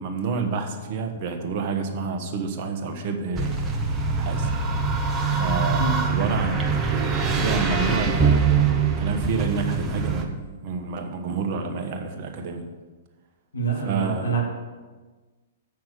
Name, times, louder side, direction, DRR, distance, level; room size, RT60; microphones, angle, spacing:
voice 1, 0.0-3.6 4.1-4.5 5.4-6.8 7.2-8.6 9.0-12.6 13.8-14.4, right 4 dB, 40° right, 5 dB, 1.1 m, -29 dB
sound 1, 3.3-10.2, right 5 dB, 15° right, 1.0 m, -23 dB
voice 2, 13.5-14.4, right 5 dB, 70° left, -2 dB, 2.4 m, -26 dB
7.6 x 6.0 x 6.8 m, 1.3 s
figure-of-eight pair, 110°, 0 cm